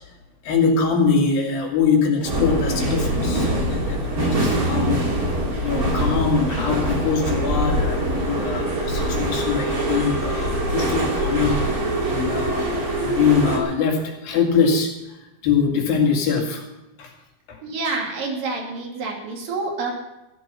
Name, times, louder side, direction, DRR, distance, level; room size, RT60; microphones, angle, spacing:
voice 1, 0.4-5.1 5.6-11.7 12.1-15.2 15.4-16.6 17.0-17.1 17.5-17.6, left 5 dB, 80° left, 1 dB, 4.0 m, -23 dB
sound 1, 2.2-13.6, right 1 dB, 25° right, 2.9 m, -23 dB
voice 2, 17.6-19.9, right 3 dB, 70° right, 0 dB, 4.2 m, -28 dB
14.5 x 11.5 x 5.7 m, 0.98 s
omnidirectional pair, 4.1 m